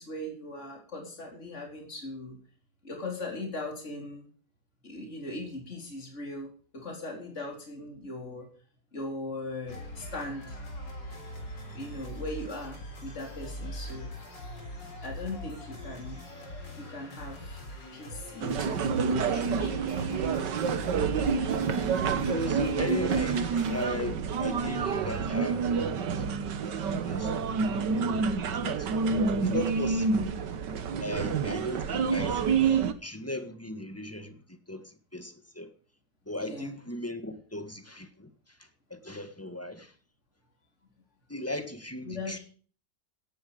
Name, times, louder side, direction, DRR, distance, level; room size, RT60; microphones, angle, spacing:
voice 1, 0.0-2.4 2.8-4.3 4.8-8.5 8.9-10.6 11.7-14.1 15.0-16.2 16.7-17.6 17.9-19.9 36.4-36.7 42.0-42.4, left 2 dB, 40° left, 4.5 m, -39 dB
sound 1, 9.7-24.0, left 1 dB, 90° left, 4.8 m, -41 dB
sound 2, 18.4-32.9, right 5 dB, 75° right, 1.9 m, -28 dB
voice 2, 21.1-21.5 22.2-26.2 26.6-28.9 29.4-30.3 31.0-35.7 36.2-39.9 41.3-42.4, left 1 dB, 10° left, 1.6 m, -38 dB
17.5 x 10.5 x 5.2 m
omnidirectional pair, 1.9 m